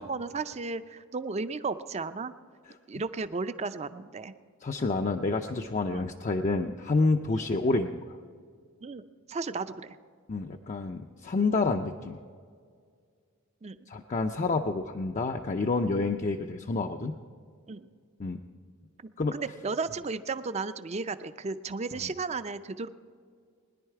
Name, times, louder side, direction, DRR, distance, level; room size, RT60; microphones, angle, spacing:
voice 1, 0.0-2.3 2.9-4.3 5.9-6.1 7.3-7.5 8.8-10.0 13.6-13.8 16.2-16.5 17.7-17.9 19.3-22.9, right 4 dB, 30° right, 12 dB, 0.5 m, -34 dB
voice 2, 4.6-8.0 10.3-12.2 13.9-17.2 18.2-18.4 19.2-19.4, left 3 dB, 35° left, 4 dB, 0.4 m, -28 dB
20.5 x 10.5 x 4.7 m, 2.1 s
head